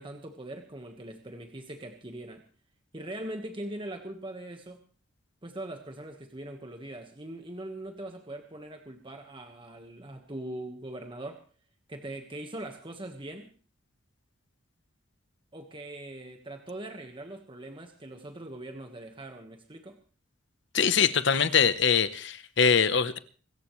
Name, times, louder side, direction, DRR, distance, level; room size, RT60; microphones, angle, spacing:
voice 1, 0.0-2.4 2.9-4.8 5.4-11.4 11.9-13.5 15.5-20.0, right 1 dB, 25° right, 4 dB, 1.5 m, -41 dB
voice 2, 20.7-23.2, left 6 dB, 65° left, 13 dB, 1.0 m, -23 dB
25.5 x 14.5 x 3.2 m, 0.39 s
head